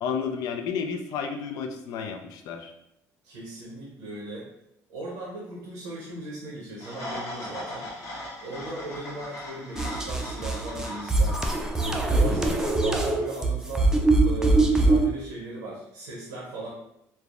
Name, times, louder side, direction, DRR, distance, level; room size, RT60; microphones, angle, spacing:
voice 1, 0.0-2.7, left 6 dB, 70° left, 4 dB, 0.4 m, -31 dB
voice 2, 3.2-4.5 4.9-7.9 8.4-11.4 11.8-13.9 14.2-16.7, right 2 dB, 85° right, -4 dB, 0.8 m, -37 dB
sound 1, 6.8-12.5, left 1 dB, 45° left, 0.8 m, -39 dB
sound 2, 9.8-15.1, right 2 dB, 10° right, 0.4 m, -23 dB
3.3 x 2.0 x 2.4 m, 0.79 s
cardioid pair, 100°, 7 cm